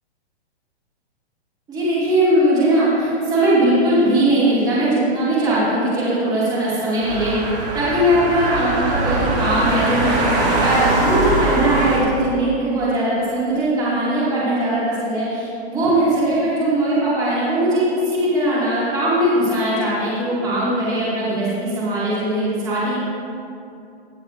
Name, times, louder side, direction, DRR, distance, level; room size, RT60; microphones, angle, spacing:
voice 1, 1.7-7.3 7.7-10.3 10.6-23.0, right 1 dB, 10° right, -10 dB, 2.5 m, -20 dB
sound 1, 7.0-12.0, right 2 dB, 40° right, 2.4 m, -21 dB
18.0 x 7.2 x 2.7 m, 2.6 s
hypercardioid pair, 170°, 33 cm